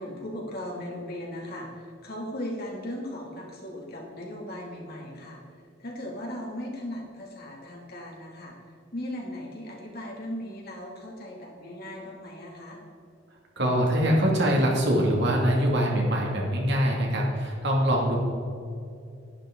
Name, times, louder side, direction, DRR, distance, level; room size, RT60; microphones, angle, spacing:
voice 1, 0.0-5.4 5.8-8.6 8.9-12.8, left 1 dB, 50° left, -2 dB, 2.5 m, -37 dB
voice 2, 13.6-18.2, equal, 60° right, -2 dB, 2.4 m, -23 dB
11.5 x 11.0 x 3.8 m, 2.5 s
head